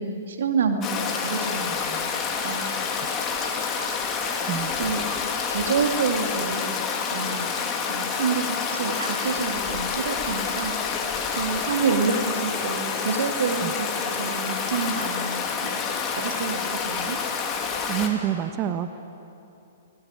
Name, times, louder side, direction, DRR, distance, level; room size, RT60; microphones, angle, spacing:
voice 1, 0.0-2.0 2.4-2.9 4.8-5.0 5.5-6.8 7.1-7.5 7.9-10.8 11.4-17.2, right 5 dB, 65° right, 5 dB, 2.4 m, -28 dB
Stream, 0.8-18.1, left 5 dB, 25° left, 2.7 m, -28 dB
voice 2, 17.9-19.0, right 10 dB, 30° right, 9 dB, 1.2 m, -27 dB
22.5 x 17.5 x 9.6 m, 2.8 s
figure-of-eight pair, 120°, 0 cm